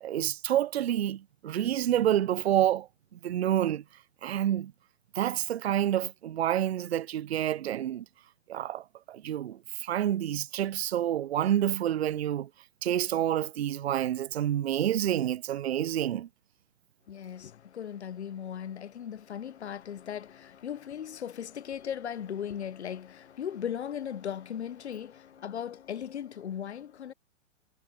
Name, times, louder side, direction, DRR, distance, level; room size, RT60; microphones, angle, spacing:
voice 1, 0.0-2.9 3.2-3.8 4.2-4.7 5.2-8.0 8.5-12.5 12.8-16.3, right 11 dB, 55° right, 0.5 m, -28 dB
voice 2, 17.1-27.1, left 9 dB, 60° left, 0.8 m, -37 dB
figure-of-eight pair, 115°, 38 cm